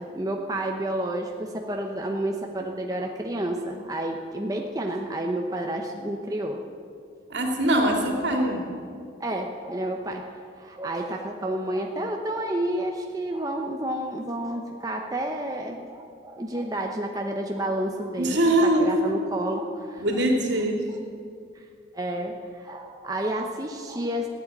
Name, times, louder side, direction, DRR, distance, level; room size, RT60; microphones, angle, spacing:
voice 1, 0.0-6.6 9.2-10.2 10.6-18.4 18.8-20.2 21.5-21.6 21.9-24.3, right 1 dB, 20° right, 1 dB, 0.9 m, -30 dB
voice 2, 7.3-8.6 18.2-18.9 20.0-20.8, right 1 dB, 70° right, 1 dB, 2.6 m, -22 dB
16.0 x 8.6 x 9.9 m, 2.4 s
head